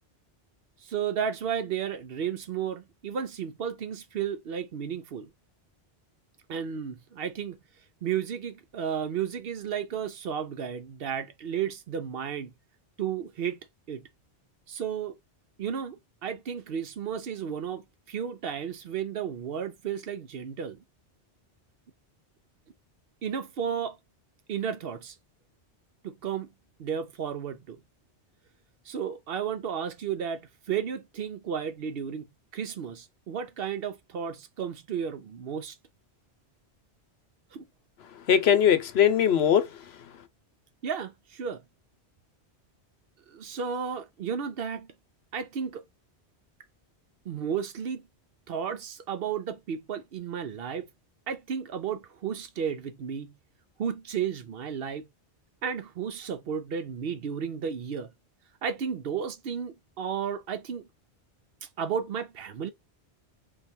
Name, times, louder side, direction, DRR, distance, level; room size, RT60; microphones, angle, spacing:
voice 1, 0.8-5.3 6.5-7.6 8.0-12.5 13.0-13.6 13.9-14.1 14.7-15.2 15.6-20.8 23.2-24.0 24.5-25.2 26.0-26.5 26.8-27.8 28.9-32.2 32.5-35.8 37.5-37.6 40.8-41.6 43.3-44.9 45.3-45.8 47.3-48.1 48.5-50.9 51.3-53.3 53.8-55.0 55.6-58.1 58.6-60.9 61.6-62.7, right 7 dB, 65° right, 0.8 m, -33 dB
voice 2, 38.1-40.2, left 9 dB, 70° left, 0.9 m, -22 dB
3.2 x 2.4 x 4.2 m
omnidirectional pair, 1.1 m